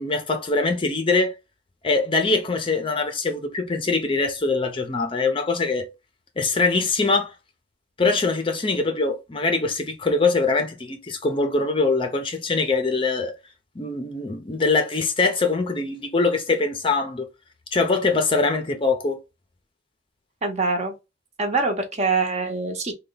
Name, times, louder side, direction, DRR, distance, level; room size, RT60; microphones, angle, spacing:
voice 1, 0.0-1.3 1.8-5.9 6.4-7.3 8.0-13.4 13.8-17.3 17.7-19.2, left 3 dB, 25° left, 0.5 m, -23 dB
voice 2, 20.4-20.9 21.4-22.9, right 3 dB, 35° right, 0.8 m, -24 dB
3.3 x 2.2 x 3.8 m
head